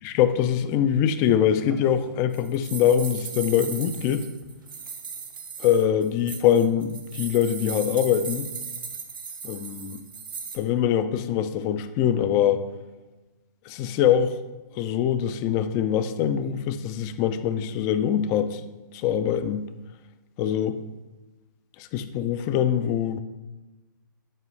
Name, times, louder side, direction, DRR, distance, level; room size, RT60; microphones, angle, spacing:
voice 1, 0.0-4.3 5.6-8.5 9.4-10.0 10.5-12.6 13.7-14.4 14.8-18.6 18.9-19.7 20.4-20.8 21.8-23.2, left 9 dB, 30° left, 11 dB, 0.4 m, -23 dB
sound 1, 1.7-10.6, right 6 dB, 75° right, 0.9 m, -38 dB
7.5 x 4.6 x 3.2 m, 1.1 s
hypercardioid pair, 125°, 11 cm